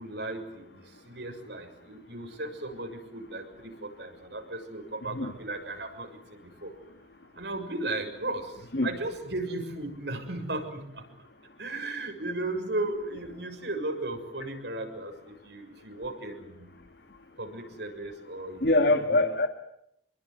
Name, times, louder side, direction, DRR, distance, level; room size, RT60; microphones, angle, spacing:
voice 1, 0.0-6.7 7.4-8.5 8.8-11.0 11.6-16.7 17.4-19.3, right 2 dB, 70° right, 4 dB, 6.7 m, -36 dB
voice 2, 18.6-19.5, left 2 dB, 60° left, 6 dB, 2.0 m, -23 dB
27.0 x 23.0 x 9.5 m, 0.77 s
head